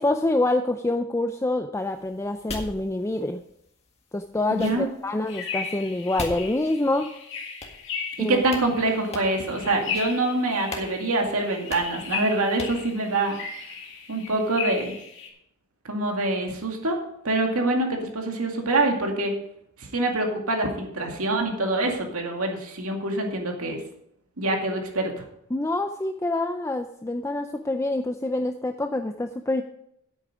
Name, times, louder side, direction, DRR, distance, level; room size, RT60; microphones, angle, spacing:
voice 1, 0.0-3.4 4.1-7.1 8.2-8.4 25.5-29.6, left 2 dB, 15° left, 7 dB, 0.4 m, -26 dB
sound 1, 1.8-7.1 7.6-8.2 8.5-8.7 9.1-9.5 9.9-10.3 10.7-10.9 11.2-11.3 11.7-12.0 12.6-12.9, left 2 dB, 30° left, 1.8 m, -40 dB
voice 2, 4.5-4.9 8.2-13.4 14.1-15.0 15.8-17.0 17.2-19.3 19.8-23.8 24.4-25.1, right 2 dB, 80° right, 2 dB, 2.2 m, -25 dB
sound 2, 5.3-15.3, left 5 dB, 60° left, 2.1 m, -36 dB
10.0 x 8.6 x 4.9 m, 0.75 s
head